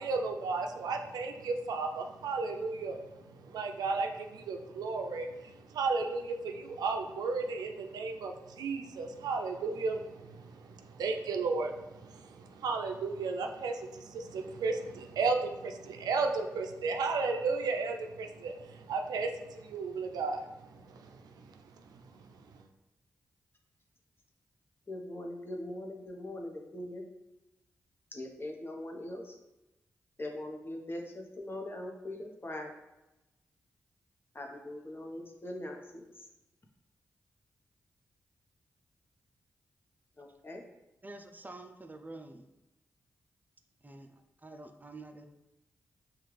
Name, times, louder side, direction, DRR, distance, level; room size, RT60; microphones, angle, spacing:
voice 1, 0.0-22.0 22.3-22.4, right 4 dB, 80° right, 4 dB, 0.4 m, -34 dB
voice 2, 24.9-27.0 28.1-29.4 30.2-32.7 34.3-36.2 40.2-40.6, left 1 dB, 35° left, 1 dB, 0.9 m, -41 dB
voice 3, 41.0-42.5 43.8-45.3, right 2 dB, 25° right, 6 dB, 0.5 m, -48 dB
5.6 x 2.4 x 3.2 m, 0.98 s
supercardioid pair, 40°, 7 cm